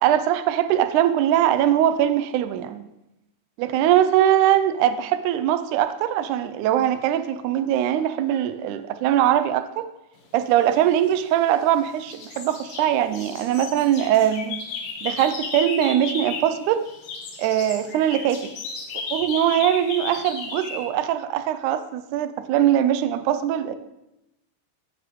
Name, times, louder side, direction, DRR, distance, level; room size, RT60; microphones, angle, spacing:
voice 1, 0.0-2.9 3.6-9.9 10.3-14.6 15.0-16.8 17.4-18.5 19.1-23.7, right 11 dB, 80° right, 11 dB, 1.9 m, -21 dB
sound 1, 10.9-11.8 12.1-16.6 16.8-20.9, left 5 dB, 80° left, 2.7 m, -34 dB
10.0 x 8.0 x 3.0 m, 0.92 s
omnidirectional pair, 3.7 m